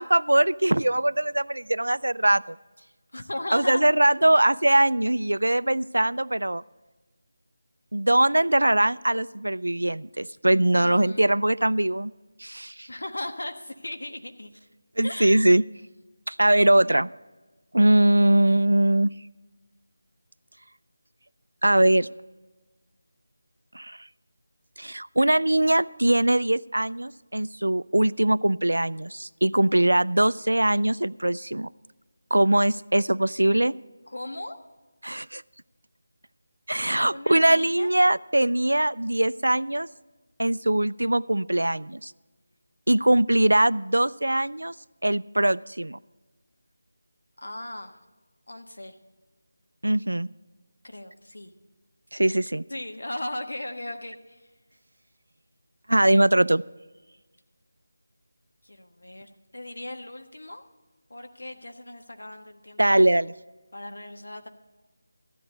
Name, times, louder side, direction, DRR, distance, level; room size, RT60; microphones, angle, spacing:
voice 1, 0.0-2.6 3.5-6.6 7.9-12.1 12.4-12.9 15.0-15.6 16.3-17.1 17.7-19.1 21.6-22.1 23.7-24.0 24.8-31.7 32.3-33.7 35.0-35.4 36.7-39.9 40.4-42.1 42.9-44.7 45.0-46.0 49.8-50.3 52.1-52.6 55.9-56.6 62.8-63.3, right 1 dB, 90° right, 19 dB, 0.3 m, -21 dB
voice 2, 3.1-3.9 10.8-11.3 12.9-14.5 15.0-15.4 34.1-34.6 37.1-37.9 47.4-48.0 48.5-49.0 50.8-51.5 52.7-54.5 58.6-60.6 61.1-63.0 63.7-64.5, left 1 dB, 75° left, 6 dB, 1.3 m, -37 dB
14.5 x 10.5 x 3.9 m, 1.2 s
figure-of-eight pair, 165°, 0 cm